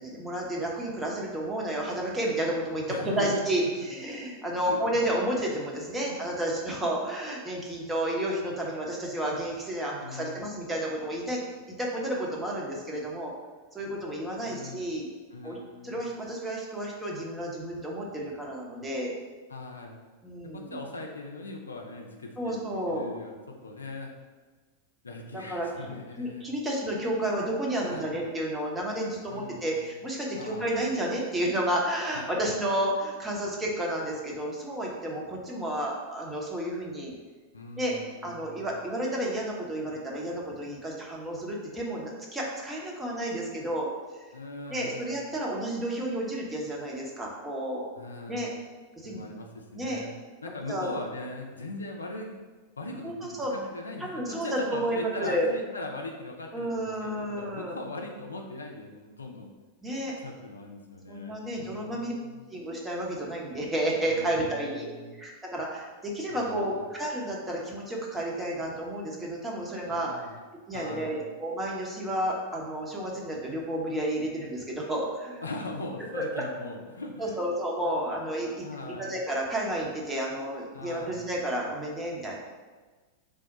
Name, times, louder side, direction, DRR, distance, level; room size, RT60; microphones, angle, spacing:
voice 1, 0.0-11.4 11.7-13.3 13.7-15.1 15.4-15.6 15.8-19.2 20.2-20.8 22.4-23.1 25.3-25.7 26.2-37.1 37.8-37.9 38.2-43.9 44.7-47.9 48.3-48.5 49.0-49.2 49.7-50.0 50.7-50.9 53.0-53.5 54.0-55.5 56.5-57.8 59.8-60.1 61.1-62.1 62.5-64.9 65.2-70.1 70.7-75.4 76.1-76.4 77.2-78.6 79.0-82.4, right 1 dB, 10° right, -3 dB, 0.7 m, -31 dB
voice 2, 2.9-3.4 4.6-4.8 6.0-6.2 10.0-10.4 14.4-14.9 15.3-16.0 19.5-20.1 20.4-22.6 22.9-24.1 25.0-26.5 27.9-28.1 29.3-29.9 30.4-30.9 32.1-32.5 37.5-38.7 44.3-45.2 47.9-48.5 49.0-50.1 50.4-52.4 52.8-59.5 60.2-62.4 64.0-65.1 66.3-66.8 69.9-70.4 70.7-71.3 75.4-77.4 78.6-79.1 80.7-81.2, left 2 dB, 75° left, 2 dB, 0.4 m, -40 dB
3.4 x 2.1 x 3.9 m, 1.3 s
figure-of-eight pair, 90°, 0 cm